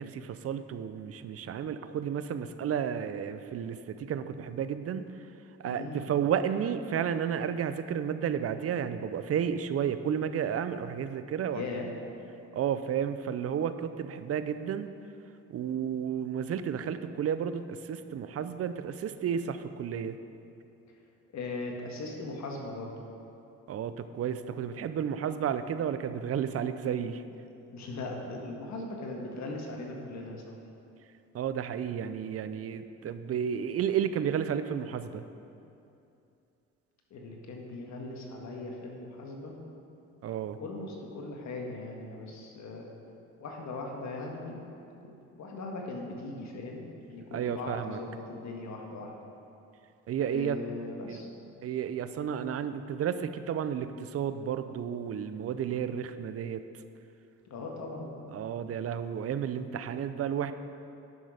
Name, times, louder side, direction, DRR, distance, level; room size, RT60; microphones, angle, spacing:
voice 1, 0.0-5.1 5.6-11.6 12.5-14.9 15.5-20.2 23.7-27.2 31.3-35.2 40.2-40.6 47.3-48.0 50.1-50.6 51.1-51.2 51.6-56.6 58.3-60.5, right 8 dB, 50° right, 11 dB, 0.5 m, -32 dB
voice 2, 5.6-6.1 11.5-11.9 21.3-22.9 27.7-30.6 37.1-39.5 40.6-42.9 43.4-44.6 45.0-49.1 50.2-51.3 57.5-58.3, left 2 dB, 65° left, 0 dB, 1.6 m, -39 dB
10.5 x 6.2 x 5.0 m, 2.7 s
cardioid pair, 90°, 30 cm